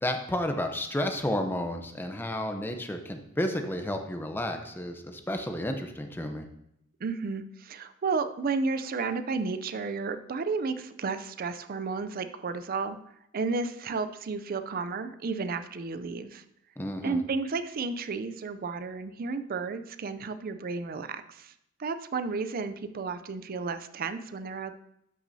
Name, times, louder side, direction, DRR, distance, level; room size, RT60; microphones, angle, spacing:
voice 1, 0.0-6.5 16.8-17.2, left 1 dB, 10° left, 5 dB, 0.7 m, -31 dB
voice 2, 7.0-13.0 13.3-16.4 17.0-21.5 21.8-24.7, right 4 dB, 45° right, 10 dB, 0.4 m, -32 dB
13.5 x 6.0 x 2.7 m, 0.76 s
head